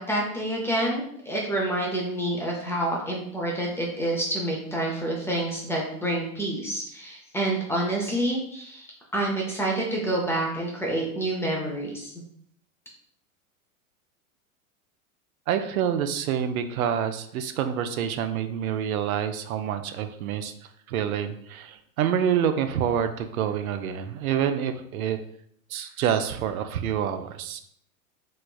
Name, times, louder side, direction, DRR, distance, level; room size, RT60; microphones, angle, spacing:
voice 1, 0.0-8.9 9.1-12.1, right 1 dB, 5° left, -2 dB, 0.5 m, -28 dB
voice 2, 15.5-20.5 20.9-25.2 25.7-27.6, right 9 dB, 75° right, 8 dB, 0.5 m, -27 dB
3.2 x 3.1 x 2.2 m, 0.68 s
hypercardioid pair, 110°, 43 cm